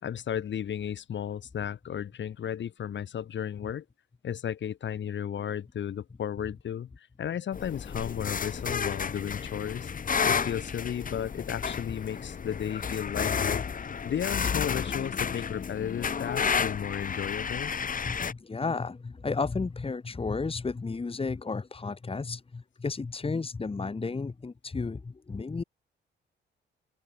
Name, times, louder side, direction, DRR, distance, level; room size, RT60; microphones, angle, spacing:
voice 1, 0.0-3.8 4.2-17.7, left 9 dB, 65° left, 4.2 m, -34 dB
sound 1, 7.5-18.3, left 6 dB, 45° left, 1.5 m, -31 dB
voice 2, 18.0-25.6, left 4 dB, 25° left, 2.5 m, -33 dB
cardioid pair, 85°, 20 cm